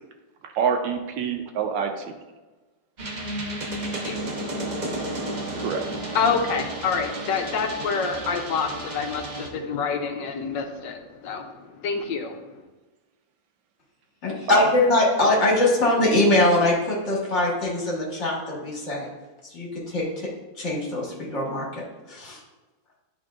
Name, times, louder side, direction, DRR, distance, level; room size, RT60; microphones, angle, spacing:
voice 1, 0.4-2.1 5.6-5.8 14.5-14.6, right 7 dB, 85° right, 5 dB, 1.4 m, -26 dB
sound 1, 3.0-9.5, right 1 dB, 45° right, 0.5 m, -32 dB
voice 2, 4.0-5.5 6.1-12.5, left 5 dB, 80° left, 5 dB, 1.3 m, -28 dB
voice 3, 14.2-19.1 19.5-20.0 20.6-21.8 22.1-22.4, left 2 dB, 40° left, -4 dB, 1.7 m, -22 dB
11.0 x 3.7 x 2.4 m, 1.2 s
omnidirectional pair, 2.0 m